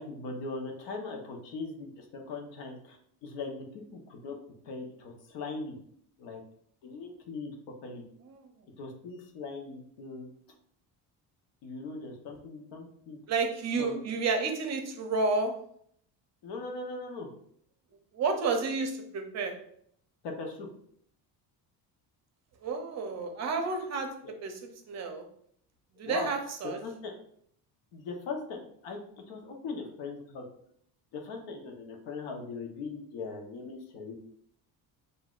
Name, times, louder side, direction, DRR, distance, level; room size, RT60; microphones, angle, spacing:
voice 1, 0.0-3.7 3.9-4.4 4.6-5.8 6.2-6.4 6.8-7.5 7.8-8.0 8.8-10.3 11.6-13.2 13.8-14.0 16.4-17.3 20.2-20.7 24.2-24.3 26.0-26.3 26.6-27.1 27.9-29.0 29.3-30.4 31.1-34.2, left 3 dB, 85° left, 2 dB, 1.0 m, -40 dB
voice 2, 13.3-15.5 18.1-19.5 22.6-24.1 24.4-24.5 24.9-25.2 26.0-26.8, right 4 dB, 40° right, 4 dB, 0.6 m, -30 dB
6.0 x 2.7 x 2.4 m, 0.67 s
cardioid pair, 155°, 42 cm